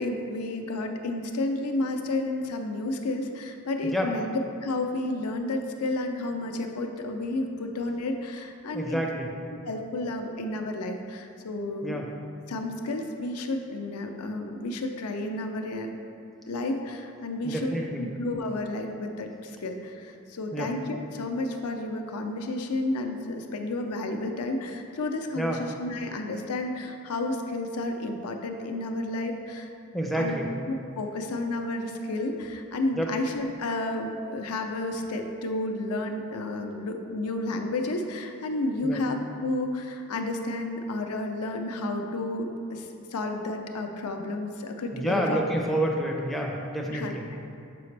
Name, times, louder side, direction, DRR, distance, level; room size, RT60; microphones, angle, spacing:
voice 1, 0.0-4.3 4.6-9.0 9.6-12.0 12.5-15.9 16.5-29.7 30.2-30.4 30.7-45.5 46.9-47.2, left 2 dB, 80° left, 4 dB, 0.5 m, -31 dB
voice 2, 8.7-9.3 11.8-12.1 17.4-18.1 20.5-20.7 25.4-25.6 29.9-30.5 32.9-33.1 38.8-39.0 44.9-47.3, equal, ahead, -1 dB, 0.5 m, -28 dB
6.8 x 4.9 x 3.3 m, 2.6 s
head